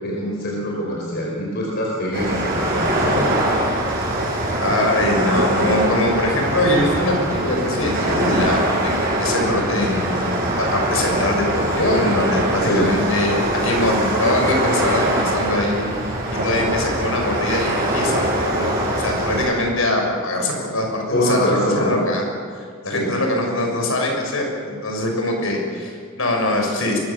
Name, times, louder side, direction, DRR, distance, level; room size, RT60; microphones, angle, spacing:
voice 1, 0.0-3.2 12.6-12.9 21.1-22.0 22.8-23.1, equal, 50° left, -2 dB, 4.7 m, -23 dB
sound 1, 2.1-19.5, right 1 dB, 45° right, 6.7 m, -22 dB
voice 2, 4.6-15.9 16.3-22.2 22.5-27.0, left 1 dB, 75° left, 1 dB, 6.5 m, -23 dB
23.5 x 21.0 x 7.3 m, 2.1 s
head